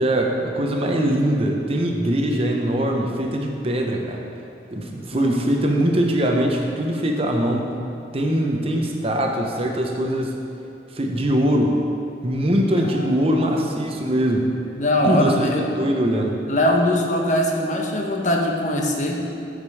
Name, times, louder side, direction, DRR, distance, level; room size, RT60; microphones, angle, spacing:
voice 1, 0.0-4.2 4.7-7.8 8.1-10.4 10.9-11.9 12.2-14.6 15.0-16.4, right 1 dB, 35° right, 1 dB, 0.8 m, -22 dB
voice 2, 12.8-13.6 14.8-15.7 16.5-19.2, left 1 dB, 45° left, 0 dB, 1.1 m, -22 dB
13.5 x 5.2 x 4.8 m, 2.6 s
head